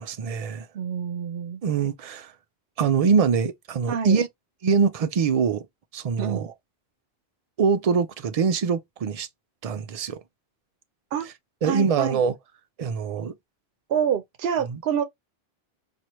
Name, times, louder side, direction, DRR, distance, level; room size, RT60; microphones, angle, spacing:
voice 1, 0.0-0.7 1.6-2.3 2.8-4.3 4.6-5.6 5.9-6.5 7.6-9.3 9.6-10.2 11.6-12.3 12.8-13.3 14.7-14.8, right 6 dB, 50° right, 0.4 m, -23 dB
voice 2, 0.7-1.6 3.9-4.2 6.2-6.5 11.1-11.3 11.7-12.2 13.9-15.0, right 8 dB, 75° right, 0.8 m, -27 dB
4.4 x 2.5 x 3.0 m
omnidirectional pair, 1.0 m